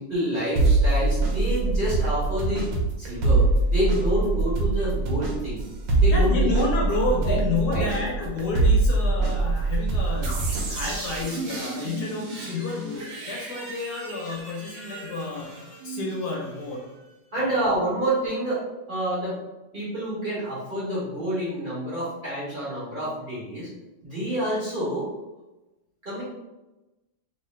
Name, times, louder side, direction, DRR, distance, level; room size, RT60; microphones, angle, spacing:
voice 1, 0.0-5.6 6.0-6.5 7.2-7.4 7.7-7.9 17.3-18.6 18.9-19.4 19.7-23.7 24.0-25.1 26.0-26.2, right 1 dB, 35° right, -9 dB, 1.2 m, -28 dB
sound 1, 0.6-11.2, right 3 dB, 85° right, 1.4 m, -23 dB
voice 2, 5.9-15.5 15.8-16.9 17.4-17.5, left 3 dB, 70° left, -2 dB, 1.1 m, -30 dB
sound 2, 10.2-17.0, right 3 dB, 65° right, 1.4 m, -36 dB
3.1 x 2.7 x 3.1 m, 1.0 s
omnidirectional pair, 2.0 m